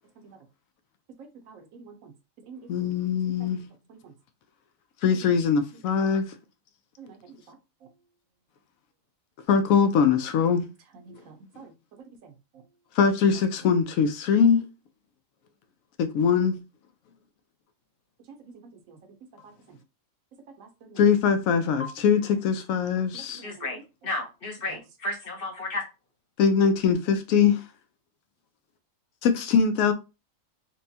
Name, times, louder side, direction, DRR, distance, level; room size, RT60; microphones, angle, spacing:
voice 1, 1.5-2.0 2.5-2.6 7.0-7.1 7.5-7.6 11.1-11.7 18.9-19.0 20.6-21.0 23.1-23.5, right 5 dB, 80° right, 1.1 m, -47 dB
voice 2, 2.7-3.6 5.0-6.2 9.5-10.6 13.0-14.6 16.0-16.6 21.0-23.4 26.4-27.6 29.2-29.9, left 6 dB, 90° left, 1.0 m, -22 dB
voice 3, 23.4-25.8, left 2 dB, 50° left, 1.0 m, -33 dB
4.2 x 2.2 x 2.7 m
omnidirectional pair, 1.4 m